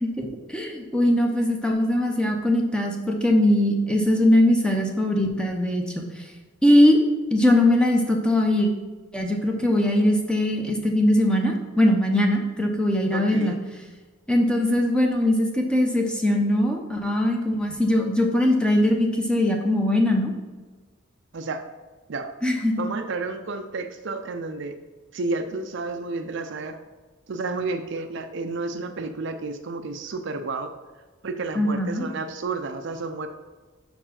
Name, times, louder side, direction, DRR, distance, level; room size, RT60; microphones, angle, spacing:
voice 1, 0.0-6.2 6.6-7.0 7.3-8.7 9.1-13.6 14.3-20.3 22.4-22.9 31.6-32.1, left 1 dB, 5° left, 2 dB, 0.7 m, -21 dB
voice 2, 13.1-13.6 21.3-21.6 22.1-24.8 25.1-26.8 27.3-30.7 31.2-33.3, right 3 dB, 55° right, 7 dB, 0.5 m, -31 dB
5.5 x 4.4 x 5.8 m, 1.3 s
head